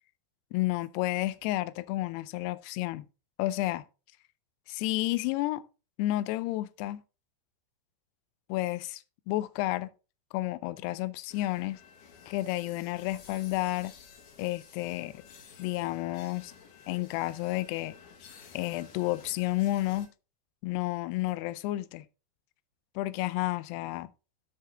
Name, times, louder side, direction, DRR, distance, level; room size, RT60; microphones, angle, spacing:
voice 1, 0.5-3.1 3.4-3.8 4.7-5.6 6.0-7.0 8.5-9.9 10.3-11.8 12.3-13.9 14.4-15.1 15.6-16.5 16.9-17.9 18.5-20.1 20.6-22.1 23.0-24.1, left 17 dB, 85° left, 2.6 m, -31 dB
sound 1, 11.3-20.1, left 6 dB, 60° left, 2.5 m, -53 dB
12.5 x 4.8 x 3.3 m
omnidirectional pair, 4.8 m